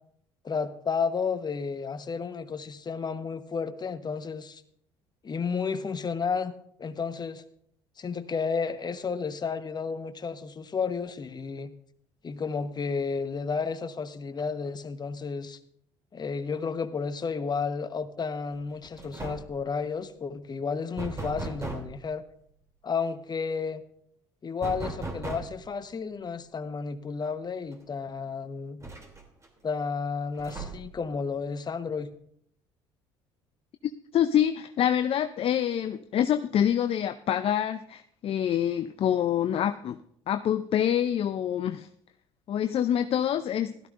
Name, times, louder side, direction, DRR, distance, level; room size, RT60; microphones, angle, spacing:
voice 1, 0.4-4.6 5.2-6.5 6.8-7.4 8.0-11.7 12.2-15.6 16.1-22.2 22.8-23.8 24.4-28.8 29.6-32.1, left 5 dB, 35° left, 10 dB, 1.2 m, -32 dB
sound 1, 18.5-18.7 19.0-19.6 21.0-22.0 24.6-25.7 27.2-27.3 27.7-27.8 28.8-29.5 30.4-31.0, right 2 dB, 25° right, 3.0 m, -37 dB
voice 2, 34.1-40.0 40.3-41.9 42.5-43.9, left 10 dB, 50° left, 9 dB, 0.6 m, -26 dB
16.0 x 13.0 x 2.6 m, 0.68 s
hypercardioid pair, 60°, 13 cm